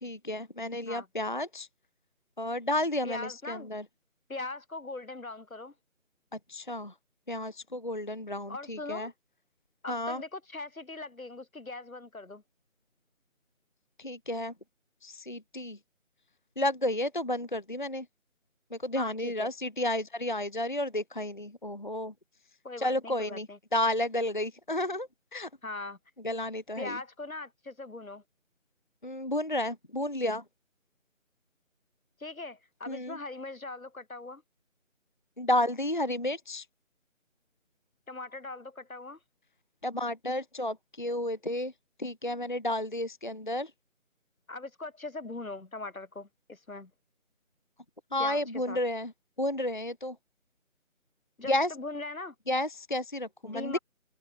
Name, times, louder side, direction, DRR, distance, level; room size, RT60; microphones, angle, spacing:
voice 1, 0.0-1.7 2.4-3.8 6.3-6.9 7.3-9.1 9.9-10.2 14.0-14.5 15.0-15.8 16.6-18.1 18.7-22.1 22.8-25.5 26.2-27.0 29.0-30.4 32.9-33.2 35.4-36.7 39.8-41.7 42.0-43.7 48.1-49.1 49.4-50.2 51.5-51.7 52.5-53.8, left 1 dB, 35° left, 0.9 m, -32 dB
voice 2, 3.0-3.7 4.3-5.7 8.5-9.1 9.8-12.4 19.0-19.5 22.6-23.6 25.6-26.0 26.8-28.2 32.2-34.4 38.1-39.2 44.5-46.9 48.2-48.8 51.4-52.4 53.4-53.8, left 3 dB, 80° left, 5.3 m, -40 dB
figure-of-eight pair, 175°, 41 cm